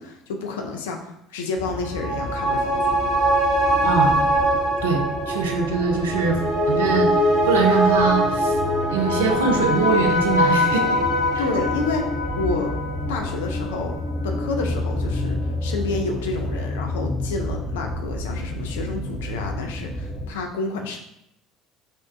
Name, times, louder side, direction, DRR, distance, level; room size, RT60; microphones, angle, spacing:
voice 1, 0.0-3.0 11.4-12.1 12.4-12.7 13.1-14.0 14.2-21.0, left 3 dB, 65° left, 2 dB, 0.3 m, -29 dB
sound 1, 1.6-20.3, left 1 dB, ahead, 0.7 m, -30 dB
sound 2, 1.7-14.6 14.9-15.0, equal, 85° right, 0.9 m, -23 dB
voice 2, 3.8-4.2 4.8-6.4 6.7-7.1 7.4-8.6 8.9-11.0 11.3-11.4, right 5 dB, 70° right, 3 dB, 0.4 m, -22 dB
4.2 x 2.1 x 2.4 m, 0.79 s
figure-of-eight pair, 60°, 0 cm